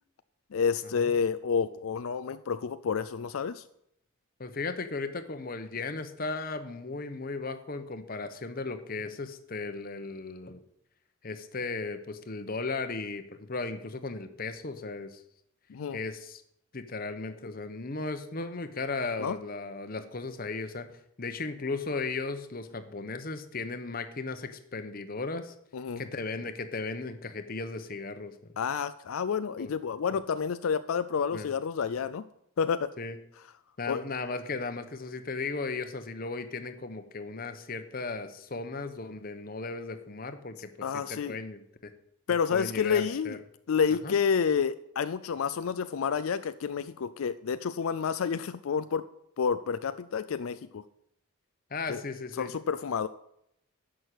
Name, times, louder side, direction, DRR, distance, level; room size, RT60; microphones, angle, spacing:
voice 1, 0.5-3.6 15.7-16.0 19.2-19.4 25.7-26.0 28.6-32.3 32.6-32.9 33.9-34.0 40.8-41.4 42.3-43.4 43.7-49.1 49.4-50.8 51.9-52.0 52.4-53.1, left 6 dB, 80° left, 13 dB, 0.4 m, -29 dB
voice 2, 4.4-10.6 11.2-15.2 15.9-16.4 16.7-25.5 26.0-28.3 29.6-29.7 31.3-31.5 33.0-33.2 33.8-41.9 42.5-43.4 44.0-44.2 51.7-52.5, left 3 dB, 45° left, 9 dB, 1.0 m, -36 dB
11.0 x 6.2 x 8.2 m, 0.76 s
head